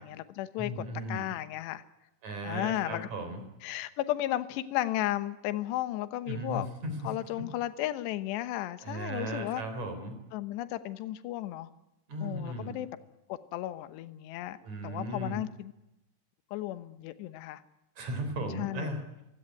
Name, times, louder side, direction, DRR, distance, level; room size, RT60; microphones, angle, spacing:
voice 1, 0.0-1.8 2.4-3.1 3.6-6.7 7.0-9.6 10.3-11.7 12.2-12.9 13.3-14.6 14.8-15.7 16.5-17.6 18.6-18.9, left 14 dB, 75° left, 11 dB, 3.1 m, -34 dB
voice 2, 0.6-1.3 2.2-3.4 6.3-6.9 8.8-10.1 12.1-12.8 14.6-15.4 18.0-19.0, right 1 dB, 40° right, 7 dB, 4.9 m, -36 dB
26.5 x 16.5 x 9.4 m, 0.94 s
omnidirectional pair, 5.2 m